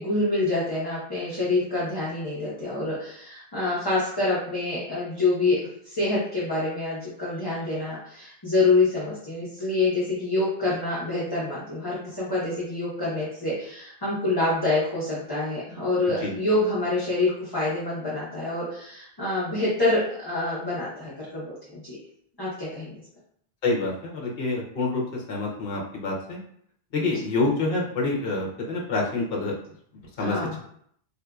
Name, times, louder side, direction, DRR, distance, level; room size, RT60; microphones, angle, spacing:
voice 1, 0.0-5.6 5.8-22.0 22.4-22.9 30.2-30.6, left 2 dB, 25° left, -9 dB, 0.9 m, -26 dB
voice 2, 23.6-26.4 26.9-29.6 30.2-30.6, left 3 dB, 60° left, -2 dB, 0.9 m, -27 dB
3.6 x 2.6 x 2.3 m, 0.66 s
omnidirectional pair, 1.1 m